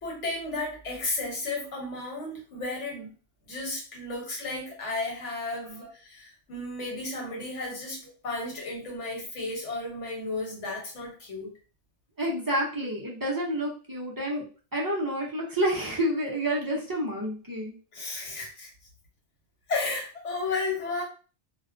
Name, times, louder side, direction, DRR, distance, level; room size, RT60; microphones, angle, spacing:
voice 1, 0.0-3.1 3.5-11.5 17.9-18.7 19.7-21.0, left 2 dB, 85° left, -2 dB, 1.3 m, -33 dB
voice 2, 12.2-14.4 14.7-17.7, equal, 35° right, -4 dB, 0.3 m, -29 dB
2.4 x 2.1 x 2.5 m, 0.37 s
omnidirectional pair, 1.2 m